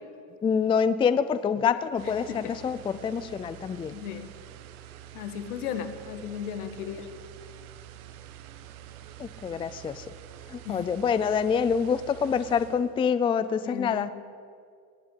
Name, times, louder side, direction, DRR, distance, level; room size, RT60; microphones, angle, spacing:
voice 1, 0.4-4.0 9.2-10.1 10.5-14.1, left 6 dB, 10° left, 14 dB, 0.4 m, -26 dB
sound 1, 2.0-13.0, right 11 dB, 75° right, 1.4 m, -47 dB
voice 2, 3.9-4.3 5.1-7.1 10.6-10.9 13.6-14.1, left 8 dB, 80° left, 9 dB, 1.7 m, -35 dB
19.5 x 8.8 x 8.3 m, 2.3 s
hypercardioid pair, 100°, 44 cm